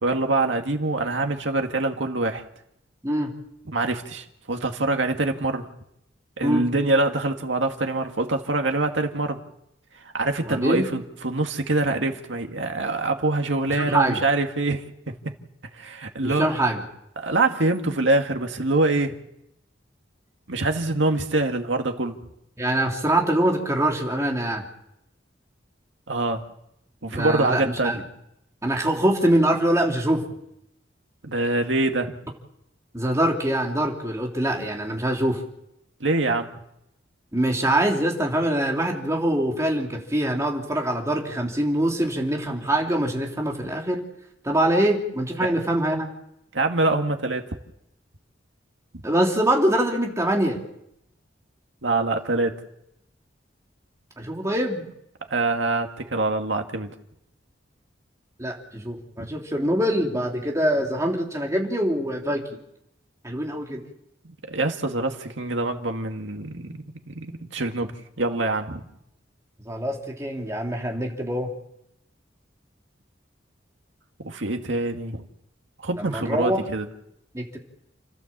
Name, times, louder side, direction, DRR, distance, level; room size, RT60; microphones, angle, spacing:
voice 1, 0.0-2.4 3.7-5.7 6.4-9.4 9.9-15.1 15.7-16.5 17.2-19.2 20.5-22.2 26.1-26.4 27.0-28.0 31.2-32.2 36.0-36.5 46.5-47.6 51.8-52.6 55.3-56.9 59.2-59.3 64.4-68.9 74.2-75.2 75.8-76.9, right 2 dB, 85° right, 4 dB, 2.0 m, -25 dB
voice 2, 10.5-10.8 13.7-14.2 16.2-16.8 22.6-24.6 27.1-28.0 28.6-30.2 32.9-35.4 37.3-44.0 44.4-46.1 49.0-50.6 54.2-54.8 58.4-62.5 63.2-63.8 69.6-71.5 76.0-76.6 77.3-77.6, right 1 dB, 15° right, 0 dB, 3.2 m, -24 dB
30.0 x 13.0 x 7.5 m, 0.81 s
head